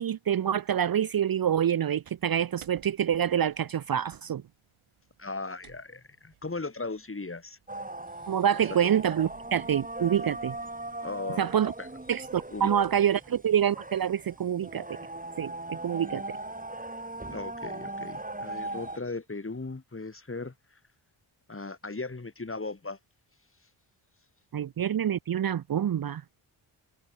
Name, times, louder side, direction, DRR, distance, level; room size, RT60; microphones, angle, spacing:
voice 1, 0.0-4.4 8.3-10.5 11.4-11.7 12.1-14.9 15.4-16.4 24.5-26.2, right 9 dB, 45° right, 0.8 m, -26 dB
sound 1, 2.0-13.3, right 11 dB, 90° right, 7.2 m, -59 dB
voice 2, 5.2-7.6 11.0-11.5 11.8-11.9 12.5-12.7 17.3-20.5 21.5-23.0, left 3 dB, 25° left, 4.7 m, -37 dB
sound 2, 7.7-19.0, right 2 dB, 15° right, 6.4 m, -39 dB
cardioid pair, 65°, 48 cm